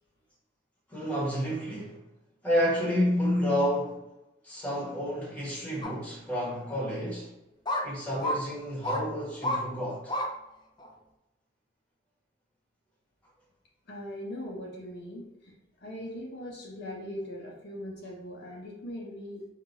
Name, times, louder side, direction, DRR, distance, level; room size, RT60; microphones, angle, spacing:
voice 1, 0.9-2.0 2.4-4.0 4.4-7.3 7.8-10.1, equal, 10° left, -5 dB, 1.3 m, -30 dB
sound 1, 5.8-5.9 6.6-6.7 7.7-7.8 8.2-8.4 8.8-9.0 9.4-9.6 10.1-10.3 10.8-10.9, left 1 dB, 25° left, 0.5 m, -29 dB
voice 2, 13.9-19.5, left 1 dB, 60° left, -3 dB, 0.8 m, -40 dB
4.7 x 2.5 x 2.6 m, 0.94 s
head